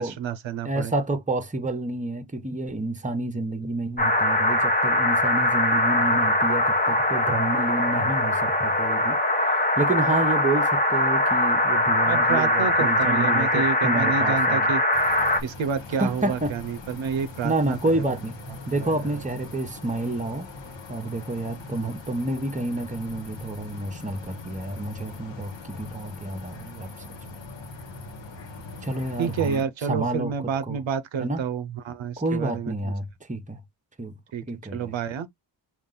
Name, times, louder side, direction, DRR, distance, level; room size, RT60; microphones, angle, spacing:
voice 1, 0.0-0.9 12.1-14.8 15.4-18.0 18.8-19.2 29.2-32.9 34.3-34.4 34.7-35.3, right 7 dB, 85° right, 0.7 m, -29 dB
voice 2, 0.6-9.2 9.8-14.7 16.0-16.5 17.4-18.4 18.7-20.5 20.9-27.0 28.8-30.3 30.7-30.8 31.2-31.4 32.2-33.6 34.0-34.1 34.5-34.9, right 2 dB, 15° right, 0.8 m, -29 dB
sound 1, 4.0-15.4, left 1 dB, 20° left, 0.8 m, -22 dB
sound 2, 14.9-29.6, left 3 dB, 70° left, 1.2 m, -41 dB
5.3 x 2.5 x 3.7 m
wide cardioid pair, 90°, 45 cm